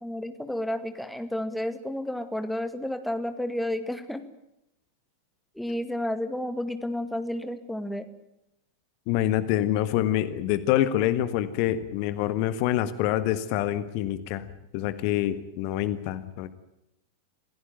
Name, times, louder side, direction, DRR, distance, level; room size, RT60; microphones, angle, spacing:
voice 1, 0.0-4.2 5.6-8.1, left 1 dB, ahead, 9 dB, 2.1 m, -31 dB
voice 2, 9.1-14.4 14.7-16.5, left 12 dB, 45° left, 13 dB, 1.5 m, -26 dB
27.0 x 16.5 x 9.2 m, 0.84 s
figure-of-eight pair, 90°, 0 cm